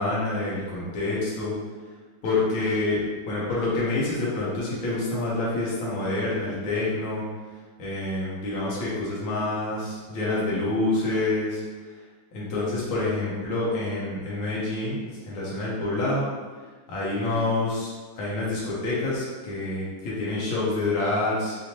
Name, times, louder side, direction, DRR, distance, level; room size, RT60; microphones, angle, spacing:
voice 1, 0.0-1.5 2.2-3.0 3.3-7.2 7.8-11.6 12.3-16.3 16.9-17.9 18.2-21.6, left 2 dB, 70° left, -7 dB, 1.9 m, -27 dB
4.9 x 2.7 x 2.9 m, 1.4 s
omnidirectional pair, 2.3 m